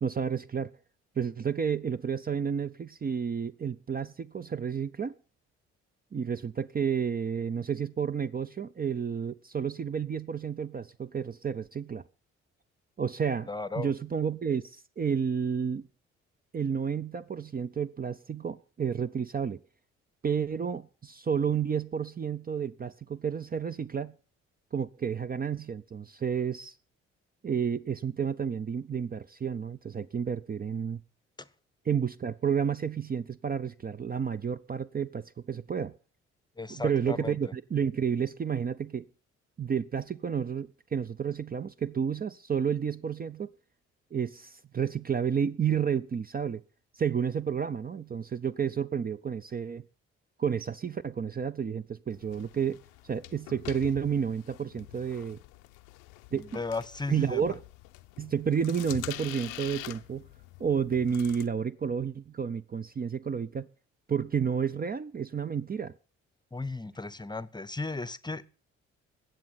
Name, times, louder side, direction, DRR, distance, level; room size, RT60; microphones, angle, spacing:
voice 1, 0.0-0.7 1.2-5.1 6.1-12.0 13.0-15.9 16.5-19.6 20.2-24.1 24.7-26.8 27.4-31.0 31.8-35.9 36.7-39.0 39.6-43.5 44.1-46.6 46.9-49.8 50.4-55.4 56.3-56.6 57.1-57.6 58.2-60.3 60.6-63.7 64.1-65.9, right 7 dB, 30° right, 0.6 m, -31 dB
voice 2, 13.5-13.9 36.6-37.4 56.3-57.4 66.5-68.4, left 3 dB, 15° left, 0.8 m, -35 dB
sound 1, 52.1-61.5, left 19 dB, 80° left, 0.6 m, -45 dB
21.0 x 7.7 x 5.7 m
hypercardioid pair, 45°, 33 cm